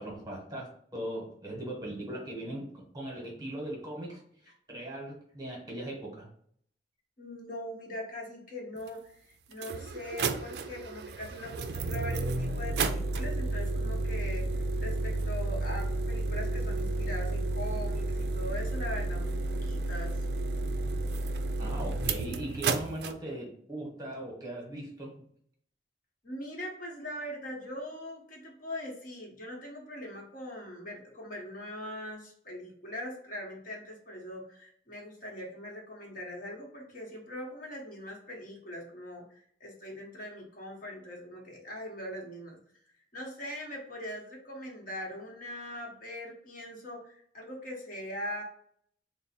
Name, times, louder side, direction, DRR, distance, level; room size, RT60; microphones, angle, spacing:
voice 1, 0.0-6.3 21.6-25.1, right 1 dB, 20° right, -1 dB, 1.0 m, -39 dB
voice 2, 7.2-20.3 26.2-42.6 43.1-48.4, left 1 dB, 50° left, -1 dB, 1.0 m, -41 dB
sound 1, 8.9-9.0 9.5-23.1, right 2 dB, 65° right, 0.3 m, -32 dB
3.4 x 2.0 x 4.1 m, 0.63 s
head